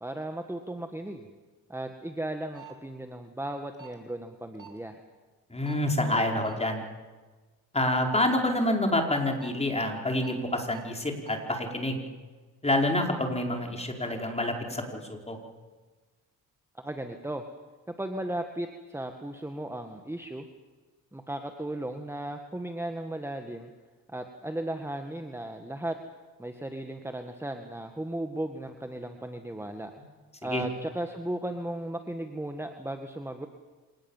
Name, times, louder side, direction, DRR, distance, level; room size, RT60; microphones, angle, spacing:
voice 1, 0.0-1.3 1.7-5.0 16.7-17.4 17.9-20.5 21.1-23.7 24.1-26.0 26.4-29.9 30.4-33.5, right 1 dB, 5° right, 5 dB, 1.9 m, -36 dB
sound 1, 2.5-2.7 3.7-3.9 4.6-4.8 5.7-5.9 6.4-6.6 9.1-9.5 10.2-10.3 10.7-10.8 11.2-11.4, right 10 dB, 55° right, 4.9 m, -47 dB
voice 2, 5.5-6.8 7.7-12.0 12.6-15.4 30.5-30.6, left 1 dB, 15° left, 2 dB, 5.1 m, -27 dB
26.5 x 19.0 x 7.5 m, 1.3 s
cardioid pair, 80°, 36 cm